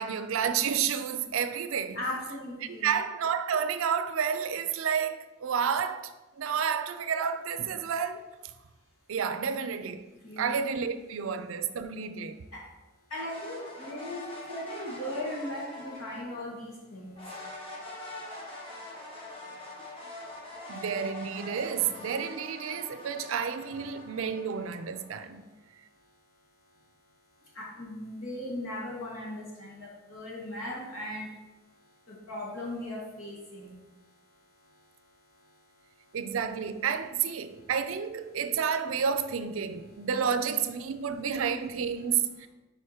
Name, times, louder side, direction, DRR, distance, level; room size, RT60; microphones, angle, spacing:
voice 1, 0.0-2.0 2.6-8.3 9.1-12.4 20.7-25.5 36.1-42.5, right 7 dB, 75° right, 0.4 m, -30 dB
voice 2, 1.9-2.9 10.2-10.6 12.5-12.6 13.1-17.1 27.5-31.3 32.1-33.7, left 1 dB, 90° left, 2.2 m, -38 dB
sound 1, 13.1-16.5 17.2-25.3, left 2 dB, 25° left, 1.0 m, -44 dB
5.0 x 4.7 x 4.3 m
head